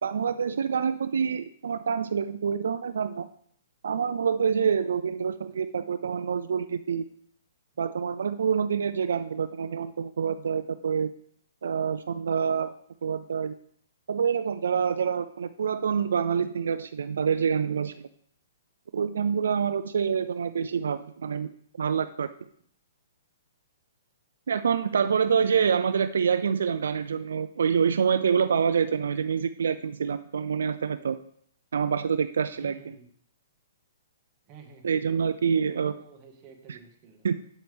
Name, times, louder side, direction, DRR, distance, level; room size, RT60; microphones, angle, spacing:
voice 1, 0.0-3.3 3.8-7.0 7.8-11.1 11.6-12.7 13.0-13.5 14.1-18.1 18.9-21.5 21.8-22.3 24.5-31.2 31.7-32.9 34.8-35.9 36.7-36.8 37.2-37.3, right 6 dB, 80° right, 12 dB, 0.4 m, -26 dB
voice 2, 32.6-33.1 34.4-35.0 35.7-37.3, right 5 dB, 25° right, 1 dB, 1.5 m, -51 dB
8.4 x 7.6 x 3.5 m, 0.63 s
hypercardioid pair, 160°, 0 cm